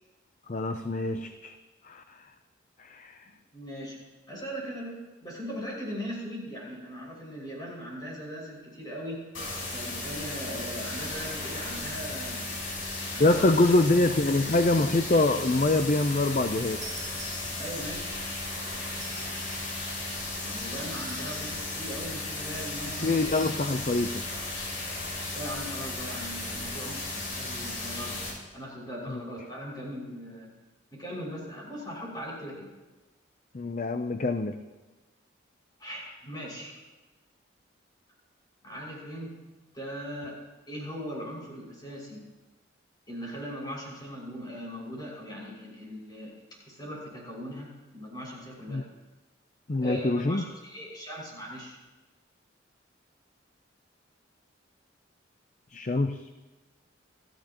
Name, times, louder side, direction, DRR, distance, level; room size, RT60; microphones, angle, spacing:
voice 1, 0.5-1.5 1.8-2.2 2.8-3.2 13.2-16.8 23.0-24.2 29.1-29.2 33.5-34.6 48.7-48.8 49.7-50.5 55.7-56.2, left 2 dB, 40° left, 8 dB, 0.6 m, -25 dB
voice 2, 3.5-4.0 4.3-9.2 9.7-12.4 13.1-13.9 17.6-18.1 20.3-23.4 25.3-28.2 28.5-30.5 30.9-32.7 35.8-36.7 38.6-39.4 39.7-40.4 40.7-42.2 43.1-46.3 46.6-48.8 49.8-51.8, equal, 20° left, -4 dB, 6.0 m, -39 dB
sound 1, 9.3-28.3, left 2 dB, 80° left, 7.0 m, -35 dB
sound 2, 16.8-18.0 18.9-19.8 21.0-21.7 23.2-23.7, right 3 dB, 20° right, 6.9 m, -46 dB
29.5 x 13.5 x 3.0 m, 1.2 s
head